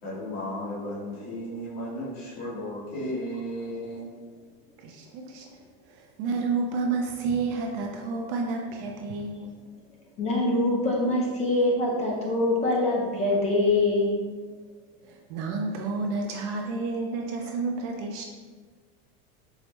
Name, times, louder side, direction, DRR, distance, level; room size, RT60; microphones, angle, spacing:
voice 1, 0.0-4.2, equal, 80° left, -7 dB, 1.5 m, -34 dB
voice 2, 4.8-5.5 5.9-9.5 15.1-18.3, right 4 dB, 45° right, 1 dB, 0.4 m, -30 dB
voice 3, 10.2-14.3, left 2 dB, 20° left, -3 dB, 0.5 m, -24 dB
4.7 x 2.0 x 3.0 m, 1.5 s
supercardioid pair, 150°, 30 cm